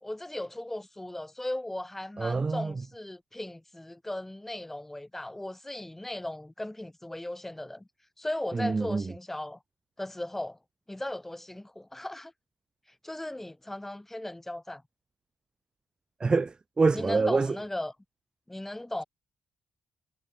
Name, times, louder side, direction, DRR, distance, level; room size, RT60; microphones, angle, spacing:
voice 1, 0.0-7.9 8.2-9.6 10.0-10.6 10.9-12.3 13.0-14.8 16.9-17.9 18.5-19.0, left 1 dB, 5° left, 2.6 m, -37 dB
voice 2, 2.2-2.7 8.5-9.1 16.2-17.6, right 4 dB, 20° right, 1.5 m, -26 dB
cardioid pair, 155°, 4 cm